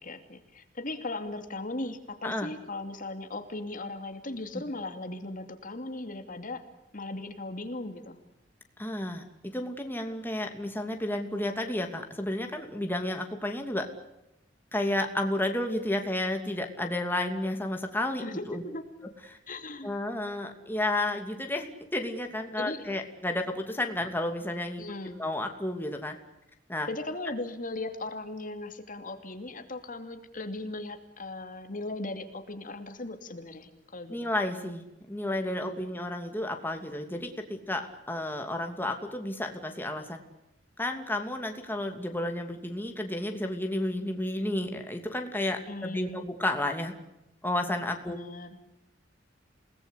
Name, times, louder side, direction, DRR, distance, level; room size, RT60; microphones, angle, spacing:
voice 1, 0.0-6.6 6.9-8.2 18.2-18.9 19.5-19.9 22.6-22.9 24.8-25.3 26.9-34.3 35.6-36.0 45.7-46.2 48.1-48.6, left 2 dB, 50° left, 7 dB, 2.7 m, -38 dB
voice 2, 8.8-13.9 14.7-18.6 19.3-19.4 19.8-26.2 26.7-26.9 34.1-40.2 40.8-46.9 47.4-48.2, left 1 dB, 10° left, 4 dB, 2.8 m, -32 dB
29.0 x 19.5 x 8.4 m, 0.88 s
head